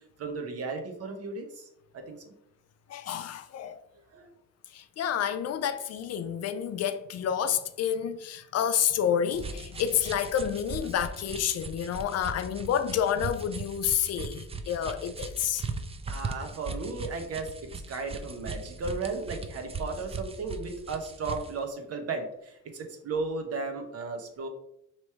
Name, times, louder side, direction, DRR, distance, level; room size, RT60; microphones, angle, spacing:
voice 1, 0.2-2.3 4.1-4.3 16.1-24.5, right 3 dB, 55° right, 0.9 m, -35 dB
voice 2, 2.9-3.8 4.7-15.6, left 9 dB, 55° left, 0.5 m, -29 dB
sound 1, 9.3-21.6, right 3 dB, 20° right, 0.4 m, -39 dB
3.0 x 3.0 x 4.6 m
cardioid pair, 90°, 30 cm